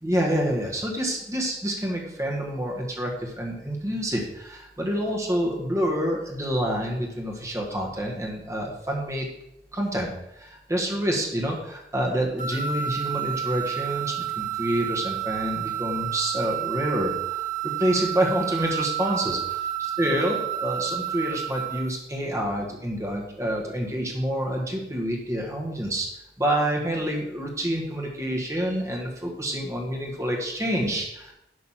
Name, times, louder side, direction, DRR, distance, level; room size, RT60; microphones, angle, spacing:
voice 1, 0.0-9.3 9.7-17.1 17.8-19.7 20.0-26.1 26.4-31.3, equal, 15° right, -1 dB, 1.7 m, -27 dB
sound 1, 12.4-22.0, right 11 dB, 50° right, 0.8 m, -30 dB
11.0 x 4.1 x 5.8 m, 0.84 s
head